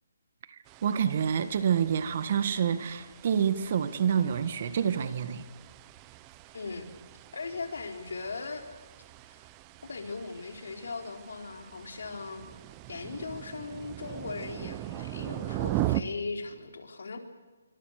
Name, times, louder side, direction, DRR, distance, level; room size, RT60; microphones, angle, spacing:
voice 1, 0.5-5.4, right 8 dB, 40° right, 13 dB, 1.6 m, -28 dB
sound 1, 0.7-16.0, right 16 dB, 20° right, 0.8 m, -40 dB
voice 2, 6.5-6.9 7.3-8.6 9.2-9.5 9.8-12.4 12.9-17.2, left 4 dB, 70° left, 5 dB, 4.1 m, -38 dB
25.5 x 24.5 x 6.6 m, 1.3 s
hypercardioid pair, 165°, 0 cm